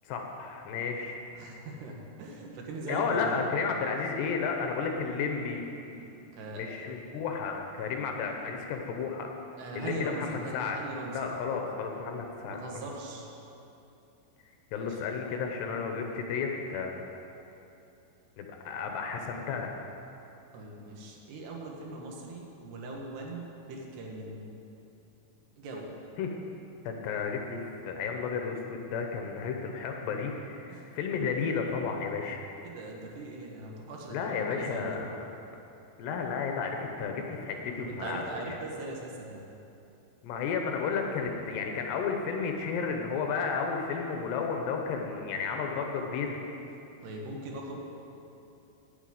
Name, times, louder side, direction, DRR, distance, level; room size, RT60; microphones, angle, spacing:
voice 1, 0.1-1.2 2.9-5.7 6.6-9.3 9.7-10.8 11.1-12.6 14.7-17.0 18.4-19.7 26.2-26.3 26.9-32.4 34.1-35.1 36.0-38.3 40.2-46.4, left 5 dB, 75° left, 2 dB, 2.9 m, -32 dB
voice 2, 1.3-3.4 6.0-6.1 6.3-6.7 9.6-11.2 12.5-13.3 14.8-15.0 20.5-24.4 25.6-25.9 29.2-29.3 30.7-30.9 32.6-35.0 37.8-39.4 47.0-47.8, right 2 dB, 70° right, -1 dB, 3.3 m, -40 dB
9.1 x 9.0 x 9.2 m, 2.8 s
omnidirectional pair, 5.2 m